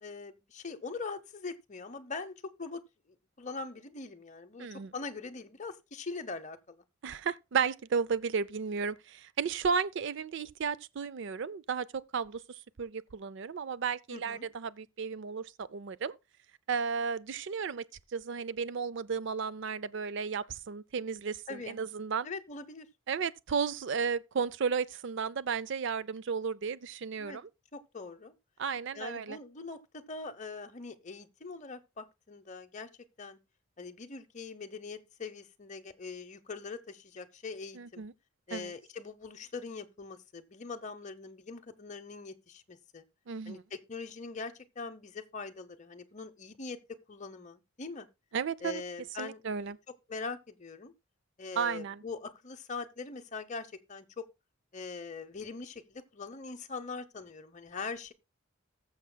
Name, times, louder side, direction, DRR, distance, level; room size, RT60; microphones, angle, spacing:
voice 1, 0.0-2.8 3.4-6.8 14.1-14.5 21.5-21.8 22.2-22.9 27.2-27.4 27.7-28.3 28.9-32.9 33.2-33.4 33.8-38.0 38.5-43.0 43.5-46.8 47.1-48.1 48.6-49.4 50.1-50.9 51.4-54.2 54.7-58.1, left 4 dB, 35° left, 0.8 m, -42 dB
voice 2, 4.6-4.9 7.0-12.4 12.8-16.2 16.7-22.3 23.1-27.5 28.6-29.4 37.8-38.1 38.5-38.7 43.3-43.6 48.3-48.8 49.2-49.8 51.6-52.0, right 6 dB, 55° right, 0.4 m, -34 dB
19.0 x 7.2 x 2.2 m
head